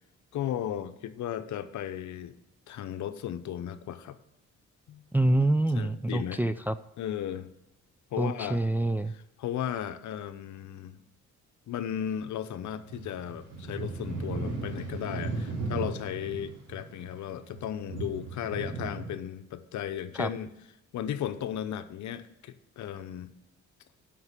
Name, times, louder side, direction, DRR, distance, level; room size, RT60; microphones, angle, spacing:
voice 1, 0.3-2.3 2.7-4.2 4.9-5.0 5.8-6.4 7.0-7.5 8.1-8.6 9.4-11.0 11.7-20.5 20.9-23.3, left 10 dB, 70° left, 11 dB, 0.8 m, -35 dB
voice 2, 5.1-6.8 8.2-9.1 20.1-20.3, right 1 dB, 5° right, 10 dB, 0.4 m, -26 dB
sound 1, 12.6-19.2, right 3 dB, 90° right, 3.5 m, -36 dB
7.9 x 6.0 x 7.3 m, 0.86 s
cardioid pair, 90°, 30 cm